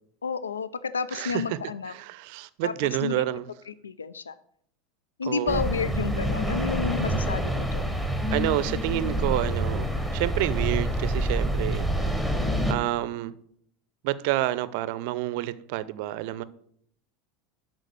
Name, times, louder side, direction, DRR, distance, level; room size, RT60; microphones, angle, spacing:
voice 1, 0.2-1.9 2.6-3.2 3.7-4.4 5.2-7.9, left 6 dB, 75° left, 0.3 m, -31 dB
voice 2, 1.1-1.6 1.9-3.5 5.2-5.6 8.3-11.8 12.7-13.3 14.0-16.4, right 15 dB, 55° right, 0.5 m, -29 dB
sound 1, 5.5-12.7, right 1 dB, 5° left, 1.3 m, -27 dB
11.0 x 3.9 x 6.5 m
figure-of-eight pair, 80°, 0 cm